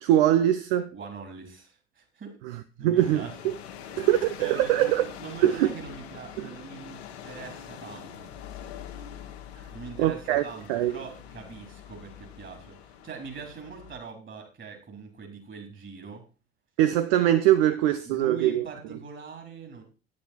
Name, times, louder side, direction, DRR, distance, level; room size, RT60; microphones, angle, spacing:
voice 1, 0.0-0.9 2.8-3.5 4.0-5.1 5.4-5.7 6.4-6.5 10.0-10.4 10.7-10.9 16.8-18.6, right 12 dB, 65° right, 0.6 m, -22 dB
voice 2, 0.9-2.4 2.8-3.3 3.9-4.1 4.4-8.3 9.7-16.2 18.0-19.8, right 5 dB, 35° right, 4.0 m, -42 dB
sound 1, 3.0-14.0, left 9 dB, 70° left, 1.3 m, -44 dB
9.7 x 8.5 x 4.5 m
figure-of-eight pair, 60°, 32 cm